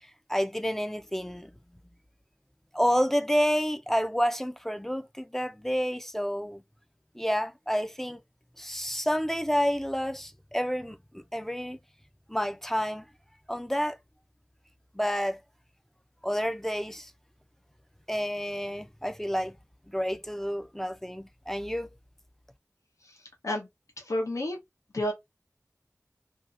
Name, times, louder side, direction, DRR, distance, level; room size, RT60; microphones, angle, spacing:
voice 1, 0.3-1.5 2.7-6.6 7.2-8.2 8.6-11.8 12.3-13.1 13.5-14.0 14.9-15.4 16.2-17.1 18.1-19.5 19.9-21.9, equal, 5° left, 0.4 m, -29 dB
voice 2, 24.1-24.6 24.9-25.1, left 1 dB, 80° left, 1.0 m, -29 dB
2.7 x 2.7 x 2.5 m
wide cardioid pair, 55°, 5 cm